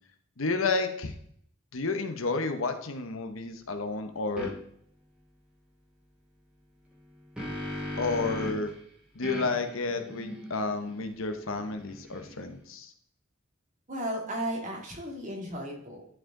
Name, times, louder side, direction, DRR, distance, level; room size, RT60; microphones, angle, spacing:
voice 1, 0.4-1.1 1.7-4.5 8.0-8.7 9.1-12.9, left 3 dB, 75° left, 6 dB, 1.0 m, -31 dB
sound 1, 4.4-4.5 6.9-8.7 9.2-12.6, left 1 dB, 5° right, 2.4 m, -39 dB
voice 2, 13.9-16.0, right 1 dB, 35° right, -1 dB, 2.2 m, -34 dB
11.5 x 4.9 x 3.8 m, 0.66 s
head